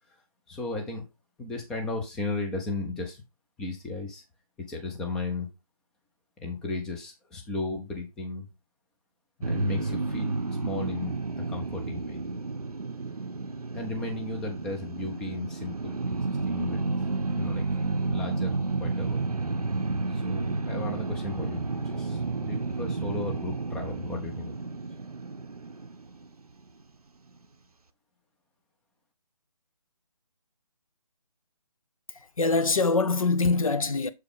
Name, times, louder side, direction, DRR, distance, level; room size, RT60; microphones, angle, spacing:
voice 1, 0.5-1.0 1.4-3.2 3.6-4.2 4.7-5.5 6.4-8.5 9.4-10.3 10.6-12.2 13.7-17.6 18.0-19.3 20.1-24.6, left 2 dB, 5° left, 0.4 m, -35 dB
sound 1, 9.4-26.6, right 3 dB, 85° right, 0.7 m, -31 dB
voice 2, 32.1-34.1, left 3 dB, 65° left, 0.9 m, -24 dB
7.0 x 4.7 x 3.5 m
figure-of-eight pair, 150°, 19 cm